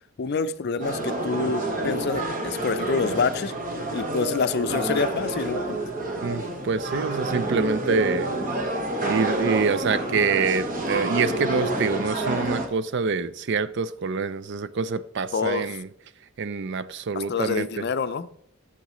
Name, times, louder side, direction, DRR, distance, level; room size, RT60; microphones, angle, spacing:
voice 1, 0.2-3.5 3.9-5.8 15.3-15.7 17.1-18.3, left 5 dB, 50° left, 0.5 m, -27 dB
sound 1, 0.8-12.7, right 1 dB, 40° right, 1.3 m, -28 dB
voice 2, 6.2-8.3 9.1-15.9 16.4-17.8, right 5 dB, 55° right, 0.4 m, -26 dB
12.0 x 7.2 x 3.1 m
head